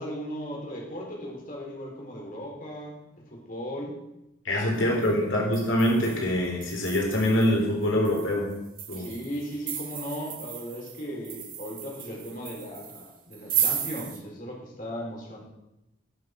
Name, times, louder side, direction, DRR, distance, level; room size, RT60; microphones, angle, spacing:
voice 1, 0.0-4.0 4.7-4.9 8.9-15.4, equal, 45° left, -3 dB, 4.7 m, -37 dB
voice 2, 4.4-8.5 8.9-9.1, left 1 dB, 85° left, -1 dB, 3.7 m, -24 dB
sound 1, 4.8-5.1 5.5-14.2, right 9 dB, 45° right, 2.4 m, -35 dB
21.0 x 7.0 x 6.2 m, 0.93 s
head